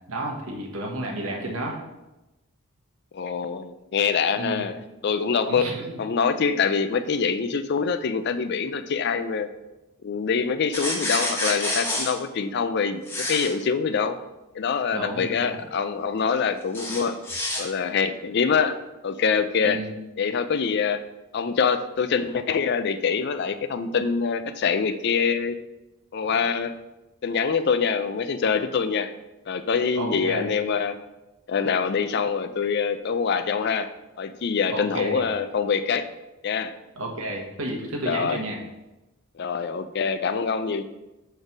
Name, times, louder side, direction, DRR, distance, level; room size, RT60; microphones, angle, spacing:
voice 1, 0.1-1.8 4.3-4.7 5.5-5.8 14.9-15.6 19.6-19.9 29.9-30.5 34.7-35.2 37.0-38.6, right 1 dB, 85° right, 0 dB, 1.3 m, -31 dB
voice 2, 3.1-4.8 5.0-5.7 6.0-9.5 10.0-14.2 14.5-17.2 17.6-19.8 20.2-21.0 21.3-25.6 26.1-26.7 27.2-29.1 29.5-31.0 31.5-33.9 34.2-36.0 36.4-36.7 38.1-38.4 39.4-40.8, left 6 dB, 50° left, 11 dB, 0.4 m, -25 dB
sound 1, 10.7-12.1 13.1-13.5 16.7-17.6, left 1 dB, 10° left, 1.2 m, -28 dB
6.5 x 3.3 x 6.0 m, 1.0 s
head